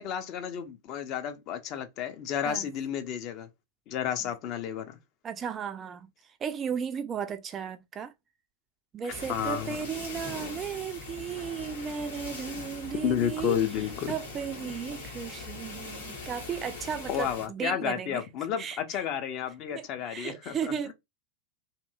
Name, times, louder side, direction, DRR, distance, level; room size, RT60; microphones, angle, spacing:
voice 1, 0.0-3.5 3.9-5.0 9.0-9.8 13.0-14.1 17.1-20.9, left 9 dB, 40° left, 0.6 m, -31 dB
voice 2, 5.2-6.1 6.4-8.1 8.9-13.6 14.1-18.2 18.6-18.8 19.7-20.9, right 7 dB, 25° right, 0.3 m, -35 dB
sound 1, 9.1-17.5, left 3 dB, 65° left, 1.3 m, -41 dB
2.9 x 2.6 x 2.3 m
figure-of-eight pair, 90°, 0 cm